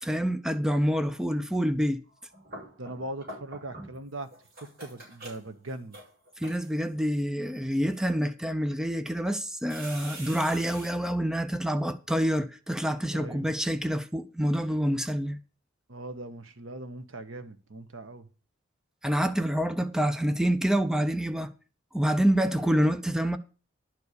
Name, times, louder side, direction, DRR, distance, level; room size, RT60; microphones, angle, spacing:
voice 1, 0.0-2.0 6.4-15.4 19.0-21.5 21.9-23.4, equal, 5° right, 0.6 m, -27 dB
sound 1, 2.1-4.0 4.3-6.9 7.5-8.0 8.7-8.8 9.7-10.9, right 1 dB, 50° right, 5.8 m, -45 dB
voice 2, 2.8-4.3 4.6-6.0 13.1-13.5 15.9-18.3, right 2 dB, 85° right, 1.3 m, -40 dB
11.5 x 4.7 x 8.3 m
head